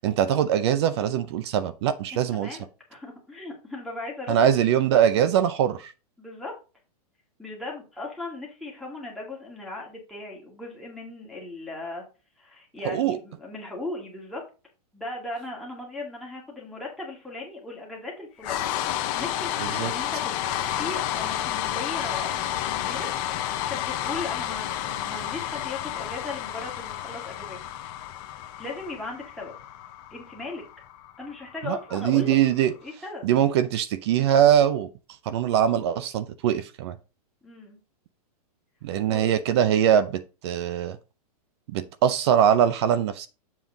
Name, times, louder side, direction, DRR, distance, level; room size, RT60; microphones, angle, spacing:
voice 1, 0.0-2.5 4.3-5.9 12.8-13.2 19.6-19.9 31.6-32.7 33.2-34.9 35.3-37.0 38.8-41.0 41.7-43.3, right 9 dB, 45° right, 0.6 m, -22 dB
voice 2, 2.1-4.6 6.2-6.5 7.4-12.0 12.4-14.4 14.9-27.6 28.6-29.5 30.1-30.6 31.2-32.4 32.8-33.3 37.4-37.8 39.1-39.2, left 2 dB, ahead, 2.0 m, -37 dB
sound 1, 18.4-32.5, left 12 dB, 30° left, 0.8 m, -31 dB
7.2 x 5.6 x 3.8 m
hypercardioid pair, 160°, 20 cm